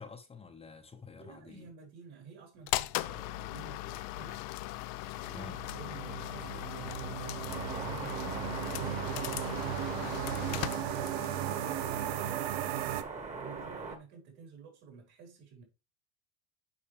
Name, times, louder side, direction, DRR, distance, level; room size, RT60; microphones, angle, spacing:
voice 1, 0.0-1.7 5.3-5.6 8.2-8.4 10.3-10.9, left 4 dB, 20° left, 0.9 m, -48 dB
voice 2, 1.2-4.4 5.2-7.3 7.6-9.8 10.8-12.5 12.8-15.6, right 6 dB, 60° right, 4.4 m, -52 dB
sound 1, 2.7-11.4, left 17 dB, 60° left, 0.6 m, -38 dB
sound 2, 5.2-13.0, right 12 dB, 80° right, 0.7 m, -37 dB
sound 3, 7.5-14.0, right 4 dB, 25° right, 1.6 m, -41 dB
8.9 x 4.8 x 3.3 m
supercardioid pair, 105°, 30 cm